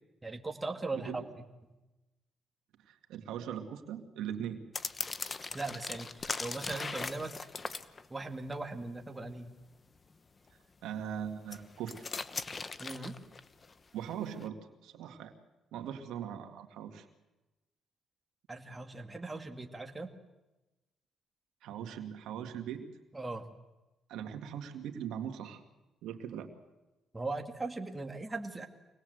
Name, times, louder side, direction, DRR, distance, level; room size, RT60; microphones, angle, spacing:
voice 1, 0.2-1.4 5.5-7.3 8.1-9.5 12.8-13.2 18.5-20.1 23.1-23.5 27.1-28.7, right 3 dB, 15° right, 4 dB, 2.2 m, -39 dB
voice 2, 0.9-1.2 2.8-4.6 10.8-12.0 13.9-15.3 15.7-17.1 21.6-22.9 24.1-25.6 26.0-26.5, right 9 dB, 85° right, 6 dB, 2.1 m, -40 dB
sound 1, 4.7-8.5 11.3-13.7 14.1-14.5, left 4 dB, 30° left, 1.1 m, -39 dB
25.5 x 19.5 x 7.9 m, 1.0 s
cardioid pair, 90°, 0 cm